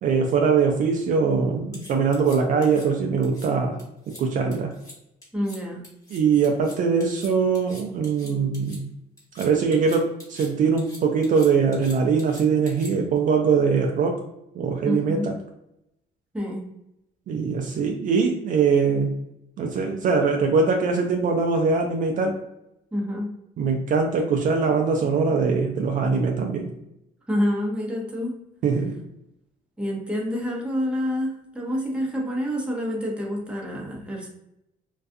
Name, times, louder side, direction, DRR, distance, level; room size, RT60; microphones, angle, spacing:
voice 1, 0.0-3.8 4.2-4.8 6.1-8.9 9.3-14.2 14.5-15.3 17.3-19.2 19.6-22.4 23.6-26.7 28.6-29.0, right 5 dB, 50° right, 2 dB, 0.4 m, -22 dB
sound 1, 1.7-2.8 3.2-3.5 3.8-4.2 4.5-4.9 5.2-5.6 5.8-8.8 9.2-10.5 10.8-13.2, left 1 dB, 20° left, 1.1 m, -44 dB
voice 2, 5.3-5.8 14.8-15.3 16.3-16.6 22.9-23.3 27.3-28.4 29.8-34.3, equal, 5° right, -2 dB, 0.7 m, -27 dB
2.3 x 2.3 x 2.5 m, 0.83 s
cardioid pair, 110°, 17 cm